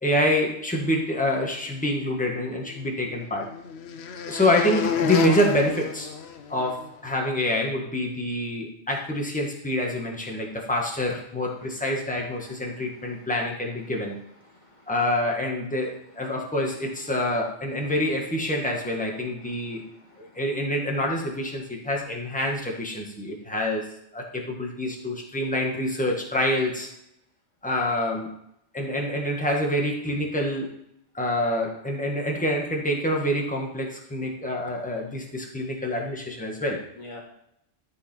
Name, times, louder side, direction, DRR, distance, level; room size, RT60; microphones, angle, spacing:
voice 1, 0.0-3.5 4.3-6.1 6.5-14.2 14.9-19.8 20.2-23.9 24.1-26.9 27.6-28.3 28.7-30.7 31.1-36.8, left 1 dB, 5° left, -1 dB, 1.6 m, -26 dB
sound 1, 2.3-6.9, left 6 dB, 65° left, 1.0 m, -30 dB
voice 2, 10.3-10.6 12.6-13.3 14.4-14.9 19.4-20.4 37.0-37.2, left 2 dB, 25° left, 0 dB, 2.0 m, -49 dB
13.0 x 5.4 x 4.5 m, 0.75 s
omnidirectional pair, 1.2 m